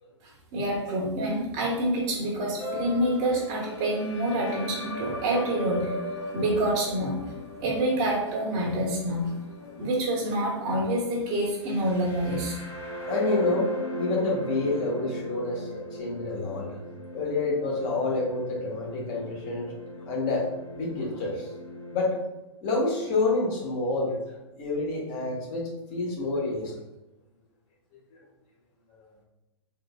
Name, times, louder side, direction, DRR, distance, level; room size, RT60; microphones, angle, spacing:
voice 1, 0.5-5.9 6.3-7.2 7.6-9.3 9.8-12.6, right 1 dB, 35° right, -3 dB, 1.1 m, -27 dB
sound 1, 2.6-22.2, left 1 dB, 15° left, 0.8 m, -38 dB
voice 2, 13.1-13.7 13.9-15.7 16.0-16.8 17.1-19.7 20.1-20.4 20.7-21.5 21.9-22.1 22.6-25.6 25.9-26.7, left 3 dB, 35° left, -3 dB, 1.2 m, -28 dB
3.7 x 3.6 x 2.3 m, 0.99 s
figure-of-eight pair, 110°, 16 cm